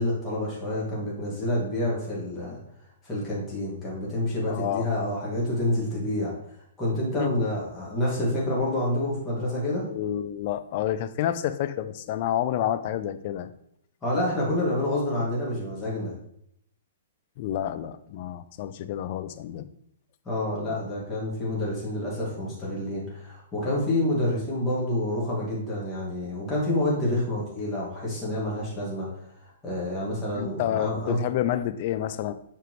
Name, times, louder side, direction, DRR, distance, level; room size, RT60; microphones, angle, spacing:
voice 1, 0.0-2.6 3.0-6.3 6.8-9.9 14.0-16.1 20.2-31.2, left 1 dB, 15° left, -7 dB, 2.5 m, -28 dB
voice 2, 4.5-4.9 7.2-7.3 9.9-13.5 17.4-19.7 30.3-32.3, left 11 dB, 45° left, 11 dB, 0.5 m, -29 dB
7.0 x 4.4 x 3.2 m, 0.73 s
figure-of-eight pair, 120°, 0 cm